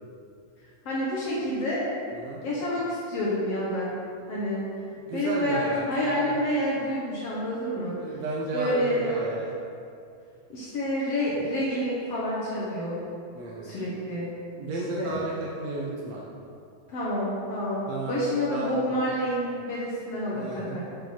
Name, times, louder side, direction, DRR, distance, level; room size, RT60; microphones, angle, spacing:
voice 1, 0.8-1.9 2.4-3.9 4.3-4.6 5.1-8.2 8.5-9.1 10.5-13.0 13.6-14.3 15.0-15.2 16.9-20.8, equal, 60° left, -6 dB, 1.8 m, -28 dB
voice 2, 2.1-2.4 5.1-5.8 6.1-6.4 7.9-9.5 13.3-13.8 14.6-16.2 17.9-18.2 18.5-18.9 20.3-20.8, right 2 dB, 70° right, -4 dB, 1.6 m, -33 dB
7.7 x 5.3 x 5.8 m, 2.5 s
omnidirectional pair, 4.1 m